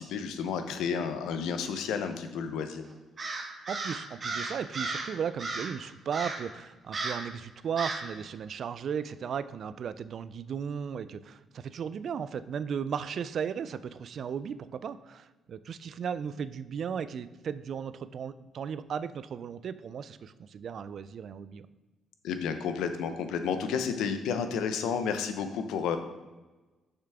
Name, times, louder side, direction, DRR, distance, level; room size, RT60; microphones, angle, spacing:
voice 1, 0.0-2.8 22.2-26.0, left 6 dB, 85° left, 8 dB, 0.6 m, -31 dB
Crow, 3.2-5.1 5.4-5.8 6.1-6.5 6.9-7.3 7.8-8.1, right 3 dB, 40° right, 1.0 m, -35 dB
voice 2, 3.7-21.6, right 7 dB, 60° right, 14 dB, 0.3 m, -36 dB
6.6 x 5.8 x 3.5 m, 1.2 s
cardioid pair, 90°, 0 cm